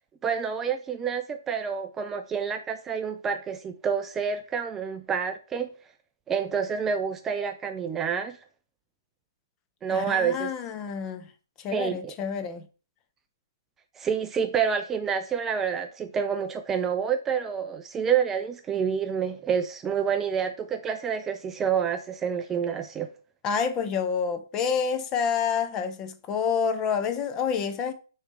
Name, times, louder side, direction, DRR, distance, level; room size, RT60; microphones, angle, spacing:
voice 1, 0.2-5.7 6.3-8.4 9.8-10.5 11.7-12.1 14.0-23.1, right 7 dB, 15° right, 0.3 m, -28 dB
voice 2, 9.9-11.3 11.6-12.7 23.4-27.9, left 6 dB, 25° left, 0.7 m, -28 dB
6.3 x 3.2 x 4.7 m
figure-of-eight pair, 130°, 2 cm